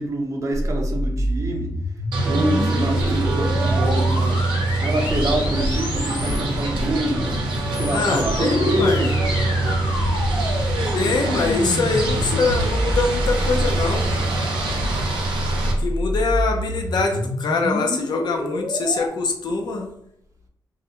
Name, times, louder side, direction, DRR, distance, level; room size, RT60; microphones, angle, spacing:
voice 1, 0.0-1.8 2.2-4.5 4.8-7.3 7.7-9.2, right 1 dB, 40° right, 1 dB, 0.5 m, -26 dB
sound 1, 0.5-6.6 7.5-14.1 15.2-19.1, equal, 85° left, 0.8 m, -28 dB
sound 2, 2.1-15.7, right 2 dB, 90° right, 0.6 m, -23 dB
voice 2, 7.9-9.1 10.9-14.3 15.8-19.9, left 3 dB, 65° left, 3 dB, 0.4 m, -23 dB
2.4 x 2.1 x 2.8 m, 0.74 s
wide cardioid pair, 105°, 8 cm